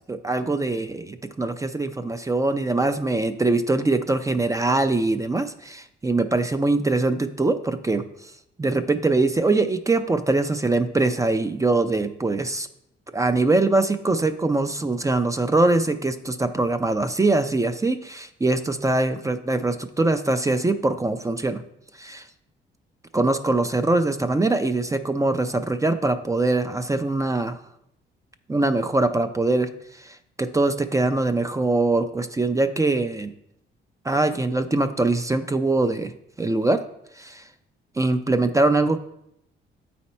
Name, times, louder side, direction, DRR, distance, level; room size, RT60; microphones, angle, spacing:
voice 1, 0.1-8.0 8.6-12.7 13.1-21.6 22.0-22.3 23.1-27.6 28.5-29.7 30.0-33.3 34.0-36.1 36.4-36.8 37.2-37.4 38.0-39.0, right 2 dB, 15° right, 9 dB, 0.4 m, -22 dB
8.1 x 4.2 x 4.3 m, 0.77 s
cardioid pair, 90°, 20 cm